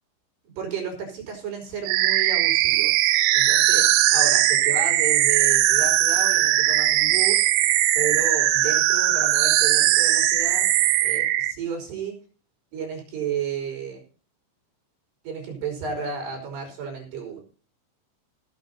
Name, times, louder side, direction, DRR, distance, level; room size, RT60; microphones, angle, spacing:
voice 1, 0.6-3.0 3.3-3.9 4.1-10.7 11.0-12.1 12.7-14.0 15.2-17.4, right 6 dB, 55° right, 2 dB, 6.7 m, -32 dB
sound 1, 1.9-11.5, right 14 dB, 90° right, 3.4 m, -20 dB
18.0 x 8.2 x 4.2 m, 0.38 s
omnidirectional pair, 5.7 m